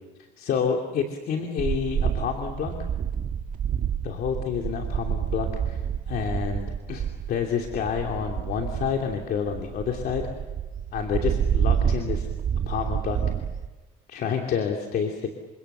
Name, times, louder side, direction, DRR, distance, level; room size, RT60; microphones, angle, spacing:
voice 1, 0.4-2.7 4.0-10.2 10.9-12.3 12.6-13.2 14.1-15.3, left 7 dB, 65° left, 3 dB, 2.9 m, -29 dB
sound 1, 1.6-13.7, right 8 dB, 55° right, 1.6 m, -28 dB
28.5 x 26.0 x 6.9 m, 1.2 s
cardioid pair, 110°, 17 cm